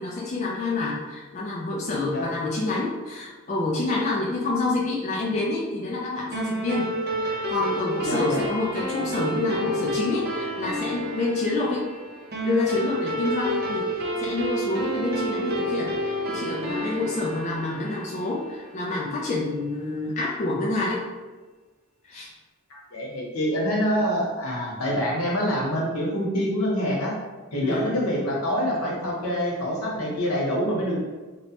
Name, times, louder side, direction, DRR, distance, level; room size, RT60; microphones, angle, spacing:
voice 1, 0.0-6.9 7.2-11.9 12.4-21.1 22.0-22.3 27.6-27.9, left 3 dB, 35° left, -4 dB, 0.3 m, -28 dB
sound 1, 6.3-19.1, right 1 dB, 45° right, 0.5 m, -30 dB
voice 2, 8.0-8.4 22.9-27.1 27.5-31.0, equal, 85° left, -4 dB, 0.9 m, -26 dB
3.0 x 2.1 x 2.8 m, 1.3 s
head